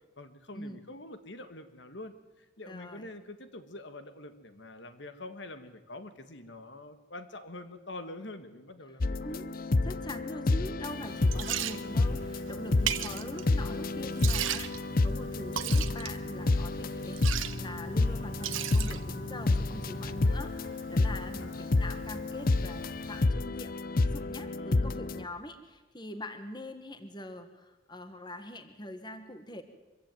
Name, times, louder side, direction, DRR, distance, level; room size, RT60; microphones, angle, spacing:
voice 1, 0.2-9.4 12.7-13.2 21.0-21.6 24.4-25.1, left 2 dB, 60° left, 10 dB, 1.6 m, -46 dB
voice 2, 2.7-3.1 9.2-9.5 9.8-14.7 15.0-23.7 24.0-29.6, left 1 dB, 20° left, 8 dB, 1.6 m, -43 dB
sound 1, 9.0-25.2, left 2 dB, 45° left, 0.7 m, -30 dB
Liquid, 10.9-23.2, right 9 dB, 80° right, 1.2 m, -39 dB
24.5 x 15.5 x 9.1 m, 1.2 s
head